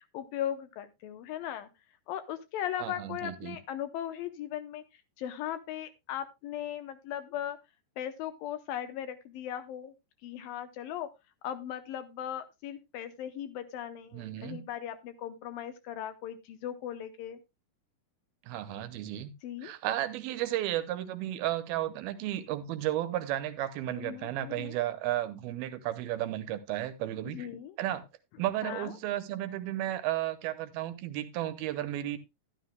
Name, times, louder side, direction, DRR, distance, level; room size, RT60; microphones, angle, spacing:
voice 1, 0.0-1.7 2.1-4.8 5.2-7.6 8.0-9.9 10.2-11.1 11.4-17.4 19.4-19.7 23.9-24.8 27.2-27.8 28.6-28.9, left 10 dB, 80° left, 11 dB, 2.3 m, -38 dB
voice 2, 2.8-3.6 14.1-14.7 18.4-19.3 19.6-27.5 27.8-28.0 28.4-32.2, right 13 dB, 80° right, 11 dB, 2.6 m, -33 dB
12.5 x 11.5 x 2.2 m, 0.22 s
omnidirectional pair, 4.5 m